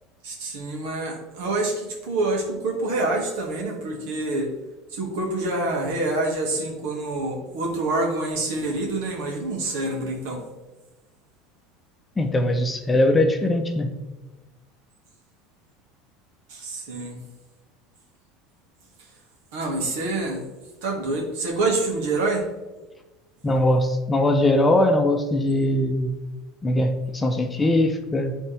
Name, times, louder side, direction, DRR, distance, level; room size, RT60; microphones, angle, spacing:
voice 1, 0.2-4.5 4.9-10.4 16.5-17.2 19.5-20.5 20.8-22.5, right 2 dB, 80° right, 0 dB, 2.0 m, -26 dB
voice 2, 12.2-14.0 23.4-26.2 26.6-28.4, left 1 dB, 15° left, 5 dB, 0.7 m, -21 dB
10.5 x 3.6 x 3.4 m, 1.1 s
supercardioid pair, 130°, 0 cm